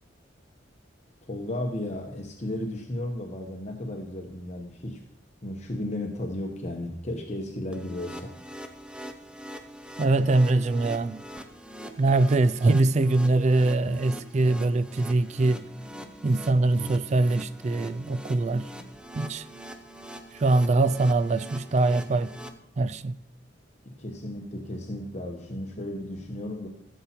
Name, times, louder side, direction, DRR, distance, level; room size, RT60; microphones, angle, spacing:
voice 1, 1.2-5.0 5.4-8.4 23.8-26.7, left 1 dB, 40° left, 1.1 m, -34 dB
sound 1, 7.7-22.5, equal, 5° right, 0.7 m, -43 dB
voice 2, 10.0-11.2 12.0-15.6 16.2-18.7 19.1-19.5 20.3-22.3 22.8-23.2, right 2 dB, 40° right, 0.4 m, -23 dB
15.5 x 7.2 x 4.4 m
head